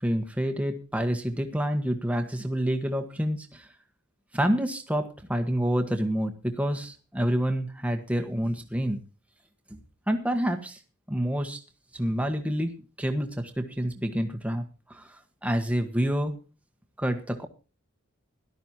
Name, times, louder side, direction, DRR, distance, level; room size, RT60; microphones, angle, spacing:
voice 1, 0.0-3.7 4.3-9.0 9.7-9.8 10.1-10.8 11.1-11.6 11.9-12.7 13.0-16.4 17.0-17.5, equal, 5° right, 6 dB, 1.3 m, -28 dB
17.0 x 12.5 x 2.9 m, 0.34 s
head